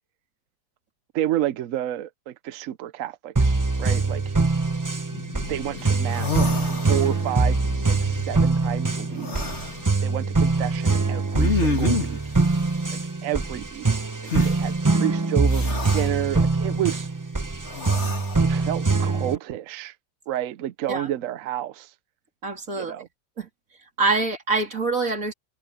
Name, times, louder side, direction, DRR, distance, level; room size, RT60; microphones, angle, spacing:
voice 1, 1.1-4.4 5.5-6.5 6.9-9.5 10.0-12.3 12.9-13.9 14.4-17.1 18.4-20.0 20.3-21.9 22.7-23.1, right 12 dB, 65° right, 0.8 m, -30 dB
sound 1, 3.4-19.4, right 3 dB, 30° right, 0.3 m, -23 dB
Drum, 5.1-11.6, left 3 dB, 75° left, 3.4 m, -42 dB
sound 2, 5.8-5.9 6.1-7.3 9.2-9.8 11.3-12.2 14.3-14.5 15.5-16.1 17.7-18.4, left 4 dB, 40° left, 3.0 m, -28 dB
voice 2, 22.4-22.9 23.4-23.5 24.0-25.3, right 3 dB, 50° right, 3.5 m, -25 dB
omnidirectional pair, 1.9 m